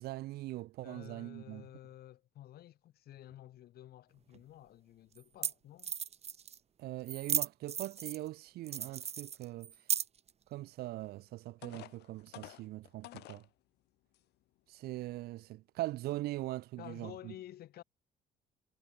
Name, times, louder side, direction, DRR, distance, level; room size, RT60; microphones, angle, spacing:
voice 1, 0.0-1.7 6.8-9.7 10.5-13.4 14.7-17.3, right 17 dB, 70° right, 0.4 m, -41 dB
voice 2, 0.8-5.9 16.8-17.8, left 13 dB, 65° left, 3.2 m, -52 dB
sound 1, 4.3-4.4 5.2-5.3 5.4-5.5 5.8-6.6 7.1-8.3 8.7-10.3, right 8 dB, 40° right, 1.2 m, -35 dB
sound 2, 11.0-11.1 11.6-13.5 14.1-14.2 14.7-15.0, left 17 dB, 80° left, 4.9 m, -51 dB
cardioid pair, 110°, 17 cm